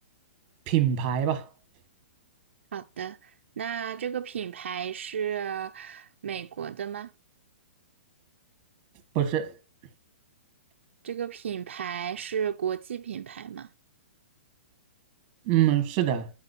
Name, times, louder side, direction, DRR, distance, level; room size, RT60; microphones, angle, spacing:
voice 1, 0.7-1.5 9.1-9.5 15.5-16.3, right 11 dB, 30° right, 2.0 m, -24 dB
voice 2, 2.7-7.1 11.0-13.7, right 8 dB, 75° right, 0.7 m, -34 dB
15.5 x 5.3 x 2.9 m
hypercardioid pair, 150°, 7 cm